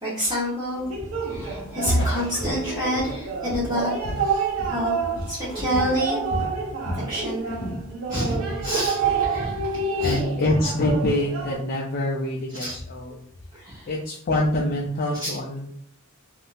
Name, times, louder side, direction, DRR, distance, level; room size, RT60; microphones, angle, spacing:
voice 1, 0.0-0.9 1.2-3.9 4.2-5.0 5.3-6.5 6.9-7.5 8.1-10.2 12.6-12.7 13.5-13.9 15.2-15.3, equal, 20° right, -10 dB, 1.0 m, -28 dB
sound 1, 0.7-11.5, right 4 dB, 75° right, 0.9 m, -29 dB
Walk footsteps, 1.3-1.6 1.9-4.9 5.1-5.5 5.7-7.1 7.5-7.8, equal, 60° left, 0.8 m, -30 dB
voice 2, 10.0-13.2 13.9-15.7, left 1 dB, 45° left, -3 dB, 0.5 m, -25 dB
3.5 x 2.6 x 2.5 m, 0.63 s
head